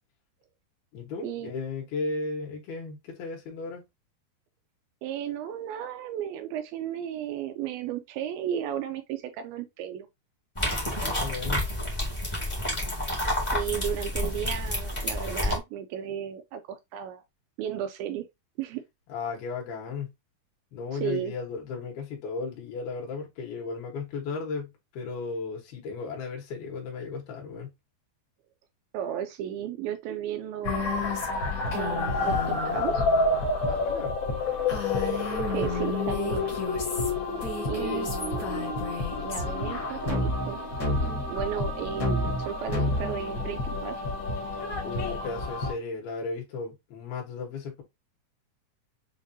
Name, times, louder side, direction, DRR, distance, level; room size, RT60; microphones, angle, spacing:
voice 1, 0.9-3.8 11.0-11.7 19.1-20.1 20.7-27.7 33.7-34.2 44.8-47.8, left 4 dB, 75° left, 3.2 m, -35 dB
voice 2, 5.0-10.1 13.5-17.2 17.6-18.3 18.6-18.8 20.9-21.3 28.9-31.2 31.7-33.1 35.5-36.6 37.7-38.7 39.2-40.6 41.3-44.0, right 10 dB, 80° right, 2.2 m, -34 dB
sound 1, 10.5-15.6, left 1 dB, 25° left, 0.6 m, -29 dB
sound 2, 30.6-45.7, left 2 dB, 50° left, 1.4 m, -28 dB
7.1 x 2.5 x 2.7 m
omnidirectional pair, 4.4 m